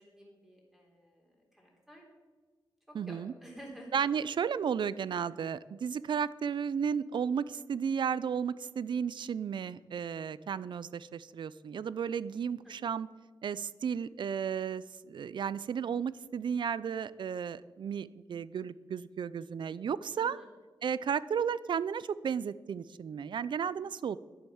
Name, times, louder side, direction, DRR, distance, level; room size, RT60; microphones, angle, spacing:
voice 1, 0.0-2.1 2.9-3.9 12.6-12.9 20.2-20.5, equal, 5° right, -1 dB, 3.5 m, -52 dB
voice 2, 2.9-3.3 3.9-13.1 13.4-20.4 20.8-24.2, right 7 dB, 65° right, 18 dB, 0.5 m, -33 dB
11.0 x 10.5 x 7.1 m, 1.3 s
wide cardioid pair, 155°, 9 cm